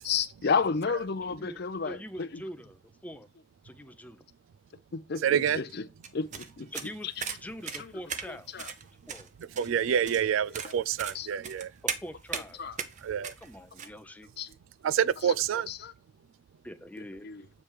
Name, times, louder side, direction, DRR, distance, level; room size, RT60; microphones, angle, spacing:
voice 1, 0.0-2.4 4.9-5.9 6.1-7.2 7.7-7.9 8.3-8.7 10.0-10.7 11.1-11.3 12.3-12.8 14.4-14.5 15.2-15.9 17.0-17.5, left 5 dB, 55° left, 0.6 m, -33 dB
voice 2, 1.2-1.6 1.8-3.3 3.6-4.2 6.7-7.1 7.4-8.5 9.1-9.3 9.6-9.7 11.8-12.6 13.4-14.3 16.6-17.3, equal, 10° left, 0.5 m, -43 dB
voice 3, 5.2-5.6 9.6-11.7 13.0-13.3 14.8-15.7, right 8 dB, 90° right, 0.3 m, -27 dB
sound 1, 6.0-13.9, right 7 dB, 40° right, 0.7 m, -38 dB
7.3 x 3.3 x 4.6 m
head